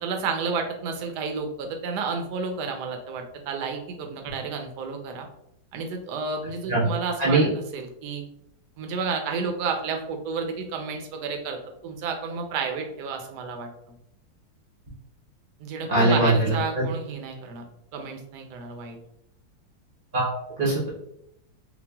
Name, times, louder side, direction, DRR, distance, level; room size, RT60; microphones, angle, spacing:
voice 1, 0.0-5.3 5.7-7.4 7.7-8.2 8.8-13.7 15.6-17.6 17.9-19.0, right 5 dB, 70° right, 4 dB, 1.1 m, -31 dB
voice 2, 15.9-16.8 20.1-20.9, right 2 dB, 45° right, -5 dB, 0.7 m, -22 dB
5.6 x 2.1 x 2.2 m, 0.77 s
omnidirectional pair, 2.1 m